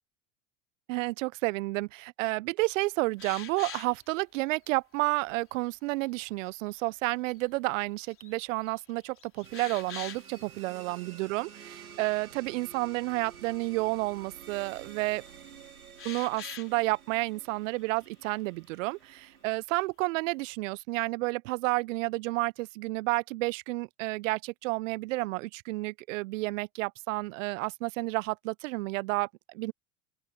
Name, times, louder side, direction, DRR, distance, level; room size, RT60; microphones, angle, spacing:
voice 1, 0.9-15.2 16.0-29.7, right 22 dB, 60° right, 0.7 m, -31 dB
sound 1, 3.2-4.0 4.6-4.7 5.3-5.8 6.3-6.8 7.3-7.4 7.9-8.3 8.6-10.5 10.8-11.0 11.3-11.5 16.0-16.8 17.8-18.3, left 8 dB, 30° left, 4.1 m, -45 dB
sound 2, 9.4-19.6, right 7 dB, 90° right, 2.3 m, -51 dB
open air
hypercardioid pair, 85°, 42 cm